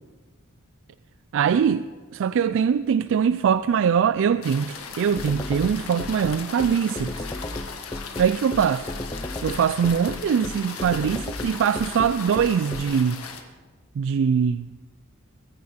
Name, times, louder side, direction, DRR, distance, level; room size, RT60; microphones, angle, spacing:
voice 1, 1.3-7.3 8.2-8.9 9.4-13.2 14.0-14.7, right 7 dB, 65° right, 0.3 m, -22 dB
sound 1, 4.4-13.4, left 5 dB, 90° left, 1.6 m, -38 dB
sound 2, 5.2-12.8, left 1 dB, 20° left, 0.7 m, -33 dB
22.0 x 10.5 x 4.3 m
head